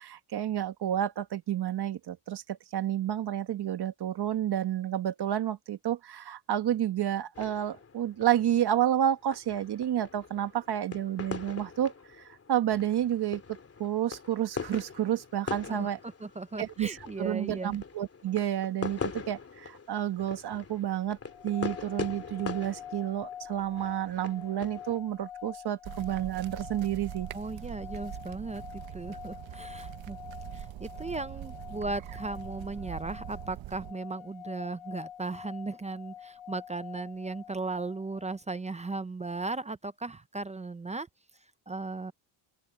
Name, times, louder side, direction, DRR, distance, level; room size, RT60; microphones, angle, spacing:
voice 1, 0.0-11.9 12.5-16.0 16.6-21.2 21.4-27.3, right 11 dB, 50° right, 1.3 m, -30 dB
sound 1, 7.3-25.0, left 5 dB, 30° left, 3.1 m, -42 dB
voice 2, 15.7-17.8 27.3-30.2 30.5-41.1 41.7-42.1, right 3 dB, 15° right, 0.3 m, -37 dB
sound 2, 21.2-38.4, left 9 dB, 85° left, 1.0 m, -47 dB
sound 3, 25.8-33.9, right 13 dB, 70° right, 1.0 m, -43 dB
open air
cardioid pair, 150°, 49 cm